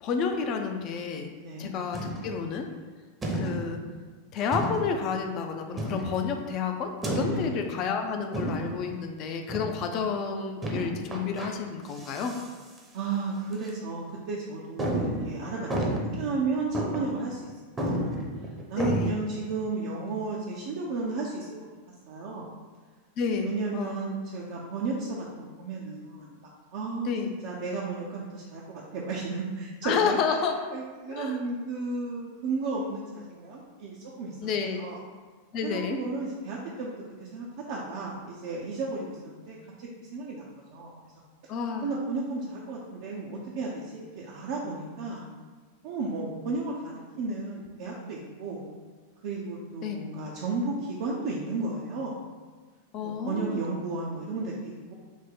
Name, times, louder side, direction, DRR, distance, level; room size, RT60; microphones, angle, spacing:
voice 1, 0.0-1.3 1.6-2.7 3.3-3.8 4.3-12.3 18.8-19.2 23.2-24.1 27.0-27.4 29.8-30.6 31.1-31.4 34.4-34.8 35.5-36.0 41.5-41.9 49.8-50.0 52.9-53.6, left 6 dB, 40° left, 4 dB, 0.4 m, -30 dB
sound 1, 1.9-2.5 3.2-3.8 4.5-5.1 5.8-6.3 7.0-7.7 8.3-8.9 9.5-9.9 10.6-11.5 11.9-12.5 12.8-12.9 13.5-13.7 14.2-14.3 14.8-16.3 16.7-17.2 17.5-17.6 17.8-19.1, right 1 dB, 15° right, 0.7 m, -31 dB
voice 2, 7.3-7.6 12.9-17.5 17.8-18.2 18.7-21.5 22.1-22.5 23.4-27.1 27.4-30.2 30.7-34.3 34.8-35.0 35.6-36.9 37.2-40.9 41.8-45.3 45.8-48.7 49.2-52.2 53.0-54.9, right 3 dB, 50° right, -4 dB, 0.5 m, -33 dB
4.7 x 2.1 x 3.9 m, 1.4 s
figure-of-eight pair, 90°, 0 cm